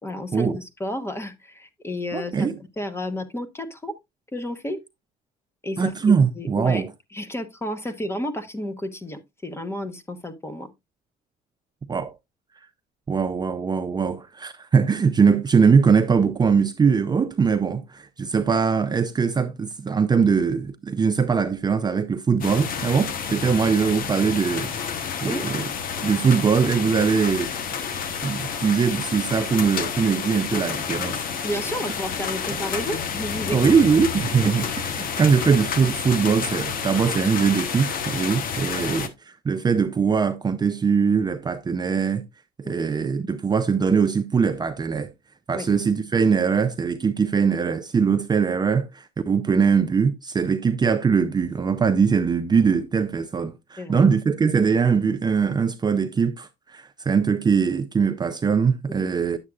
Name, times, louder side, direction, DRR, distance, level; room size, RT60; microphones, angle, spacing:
voice 1, 0.0-3.9 4.3-4.8 5.6-6.8 7.1-10.7 25.2-25.4 31.4-33.6 38.8-39.0 42.6-42.9 45.5-45.7 53.8-54.0 58.9-59.1, left 1 dB, 15° left, 1.1 m, -32 dB
voice 2, 2.1-2.6 5.8-6.9 11.9-12.1 13.1-25.7 26.0-27.5 28.2-31.2 33.5-42.2 42.7-45.1 45.5-59.4, right 6 dB, 25° right, 0.6 m, -21 dB
sound 1, 22.4-39.1, left 7 dB, 55° left, 1.1 m, -29 dB
9.7 x 7.4 x 2.4 m
cardioid pair, 110°, 17 cm